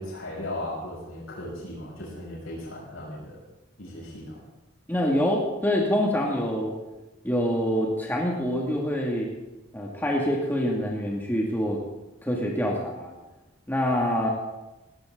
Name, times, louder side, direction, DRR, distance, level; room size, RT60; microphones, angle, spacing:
voice 1, 0.0-3.4 3.8-4.4, left 1 dB, 85° left, -5 dB, 7.5 m, -36 dB
voice 2, 4.9-6.7 7.2-9.3 9.7-11.8 12.2-13.1 13.7-14.3, equal, 10° left, -2 dB, 2.4 m, -25 dB
19.0 x 18.0 x 3.9 m, 1.0 s
head